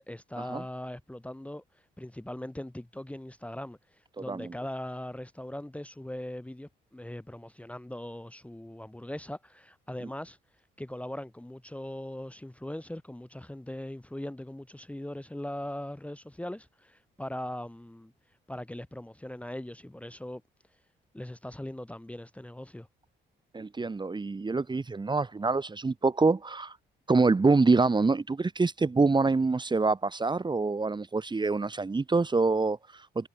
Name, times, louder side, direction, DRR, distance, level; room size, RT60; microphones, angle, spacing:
voice 1, 0.0-1.6 2.0-10.4 10.8-18.1 18.5-20.4 21.1-22.9, left 1 dB, 5° left, 1.4 m, -40 dB
voice 2, 23.5-26.8 27.1-33.3, right 3 dB, 25° right, 1.4 m, -26 dB
cardioid pair, 90°, 20 cm